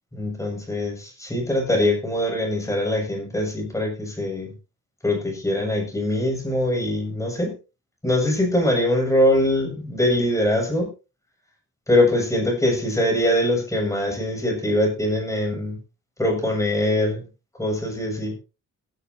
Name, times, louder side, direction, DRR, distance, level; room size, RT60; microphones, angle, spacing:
voice 1, 0.1-4.5 5.0-7.5 8.0-10.9 11.9-15.8 16.2-17.2 17.6-18.4, left 1 dB, 10° left, 2 dB, 7.1 m, -22 dB
18.0 x 11.5 x 2.9 m, 0.30 s
wide cardioid pair, 135°, 30 cm